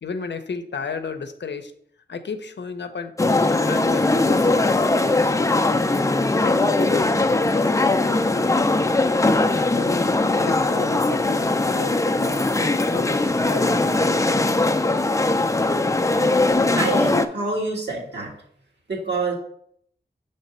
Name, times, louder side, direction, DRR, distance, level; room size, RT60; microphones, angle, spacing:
voice 1, 0.0-1.7 2.1-5.5 6.4-9.3 9.5-10.1 10.4-14.5, left 5 dB, 90° left, 8 dB, 0.6 m, -33 dB
sound 1, 3.2-17.3, left 2 dB, 20° left, 0.4 m, -20 dB
voice 2, 16.8-18.3 18.9-19.3, right 3 dB, 75° right, -3 dB, 1.9 m, -26 dB
6.7 x 3.3 x 4.2 m, 0.66 s
wide cardioid pair, 60°, 18 cm